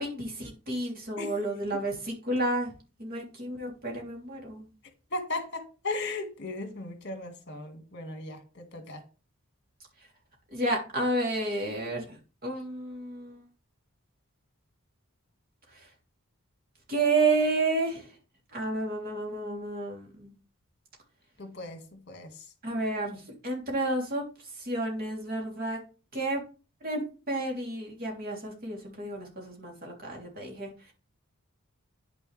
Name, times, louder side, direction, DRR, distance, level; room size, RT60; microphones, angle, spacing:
voice 1, 0.0-2.7 3.0-4.7 10.5-12.2 12.4-13.4 16.9-18.1 18.5-20.3 22.6-24.2 24.6-25.8 26.1-26.4 26.8-30.9, right 2 dB, 40° right, 3.3 m, -31 dB
voice 2, 5.1-9.0 21.4-22.5, left 2 dB, 50° left, 1.8 m, -37 dB
10.0 x 6.3 x 3.4 m
head